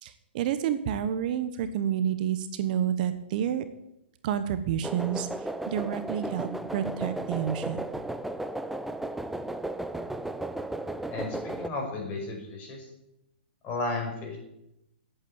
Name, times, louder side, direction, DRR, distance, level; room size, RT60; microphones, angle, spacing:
voice 1, 0.0-3.6 4.2-7.8, right 9 dB, 50° right, 11 dB, 1.1 m, -29 dB
sound 1, 4.8-11.7, right 1 dB, 5° right, 0.6 m, -34 dB
voice 2, 11.1-12.9 13.6-14.4, left 3 dB, 25° left, 1 dB, 5.4 m, -34 dB
11.0 x 8.4 x 8.9 m, 0.86 s
hypercardioid pair, 135°, 6 cm